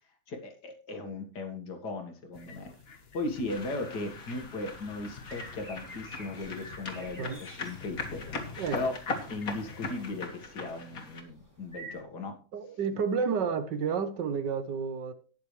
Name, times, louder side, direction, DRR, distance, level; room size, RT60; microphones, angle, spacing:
voice 1, 0.3-8.5 8.7-9.0 9.3-12.3 12.9-13.0, left 2 dB, 70° left, 2.4 m, -37 dB
sound 1, 2.3-10.3, left 5 dB, 40° left, 1.3 m, -49 dB
sound 2, 3.5-11.2, left 3 dB, 55° left, 2.3 m, -40 dB
sound 3, 4.4-12.0, right 1 dB, 10° right, 2.7 m, -51 dB
voice 2, 12.5-15.1, right 6 dB, 90° right, 1.8 m, -30 dB
19.0 x 6.9 x 3.3 m
omnidirectional pair, 1.8 m